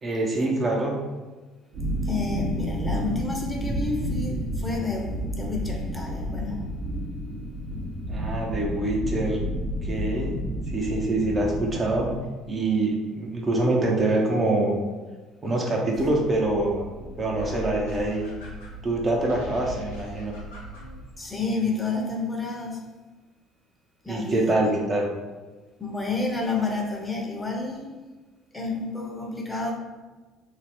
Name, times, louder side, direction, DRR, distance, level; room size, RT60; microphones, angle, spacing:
voice 1, 0.0-1.0 8.1-9.4 9.8-10.4 10.7-12.1 12.5-14.8 15.4-16.9 17.2-18.3 18.8-20.3 24.1-25.1, right 2 dB, 35° right, -1 dB, 0.7 m, -25 dB
sound 1, 1.7-12.2, equal, 60° right, 0.9 m, -30 dB
voice 2, 2.0-6.7 21.2-22.8 24.0-24.8 25.8-27.9 28.5-29.7, left 3 dB, 15° left, 0 dB, 0.8 m, -30 dB
sound 2, 15.9-21.1, equal, 80° left, 0.8 m, -39 dB
2.8 x 2.3 x 3.4 m, 1.3 s
hypercardioid pair, 55°, 0 cm